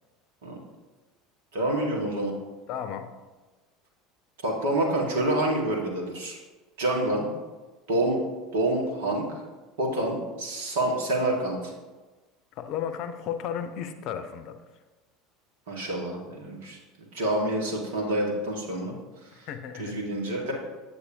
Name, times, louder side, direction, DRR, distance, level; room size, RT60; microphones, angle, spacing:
voice 1, 1.5-2.3 4.4-6.4 6.8-7.3 7.9-8.2 8.5-9.2 9.8-11.7 15.7-16.8 17.1-18.9 19.4-19.5 19.8-20.5, right 1 dB, 70° right, 0 dB, 1.7 m, -27 dB
voice 2, 2.7-3.1 12.5-14.6 19.3-20.1, left 8 dB, 55° left, 9 dB, 0.6 m, -34 dB
8.3 x 8.2 x 2.8 m, 1.2 s
figure-of-eight pair, 70°, 0 cm